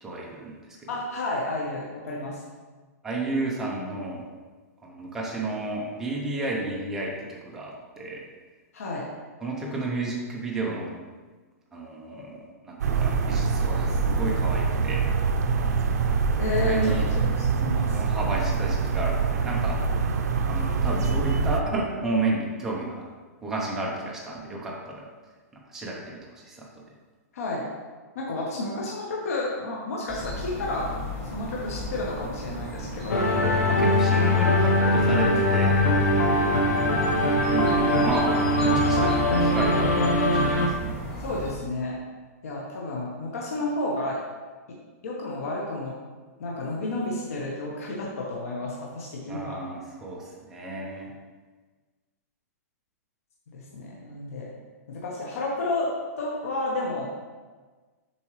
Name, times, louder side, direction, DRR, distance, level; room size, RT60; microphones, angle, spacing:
voice 1, 0.0-0.8 3.0-4.3 4.8-8.3 9.4-10.9 11.7-15.0 16.6-17.1 17.9-19.8 20.4-23.1 23.4-25.1 25.7-26.8 33.7-35.9 37.4-40.6 40.8-41.0 49.3-51.1, right 2 dB, 5° right, -3 dB, 0.6 m, -32 dB
voice 2, 0.9-2.4 8.7-9.0 16.4-17.1 17.4-18.0 27.3-27.6 28.1-30.9 31.2-33.3 41.2-42.0 42.4-44.2 44.7-44.8 45.0-45.9 46.4-49.6 53.5-54.5 54.9-57.1, left 2 dB, 65° left, -3 dB, 1.0 m, -31 dB
sound 1, 12.8-21.6, right 5 dB, 85° right, 0.6 m, -25 dB
sound 2, 30.1-41.5, equal, 10° left, 1.0 m, -36 dB
sound 3, 33.1-40.7, left 1 dB, 85° left, 1.0 m, -21 dB
7.1 x 4.4 x 3.1 m, 1.4 s
hypercardioid pair, 180°, 9 cm